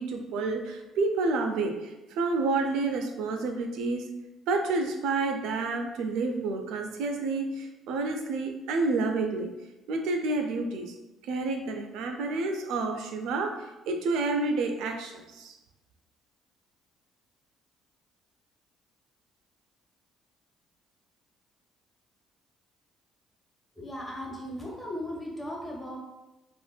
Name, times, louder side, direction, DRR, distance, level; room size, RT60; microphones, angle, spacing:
voice 1, 0.0-4.1 4.5-9.5 9.9-10.9 11.2-13.6 13.9-15.5, right 3 dB, 75° right, 4 dB, 0.4 m, -29 dB
voice 2, 23.7-26.0, left 1 dB, 15° left, -3 dB, 1.2 m, -37 dB
3.5 x 2.5 x 2.3 m, 1.0 s
hypercardioid pair, 60°, 0 cm